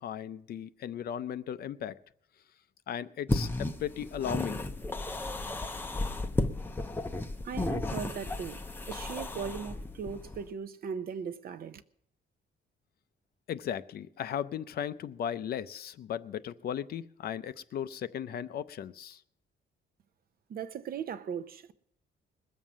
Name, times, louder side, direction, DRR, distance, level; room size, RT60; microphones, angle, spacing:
voice 1, 0.0-1.9 2.9-4.6 13.5-19.2, left 9 dB, 55° left, 0.5 m, -36 dB
sound 1, 3.3-10.5, left 2 dB, 10° left, 0.6 m, -34 dB
voice 2, 7.4-11.8 20.5-21.7, right 7 dB, 50° right, 0.7 m, -38 dB
21.0 x 7.3 x 6.2 m
cardioid pair, 170°, 20 cm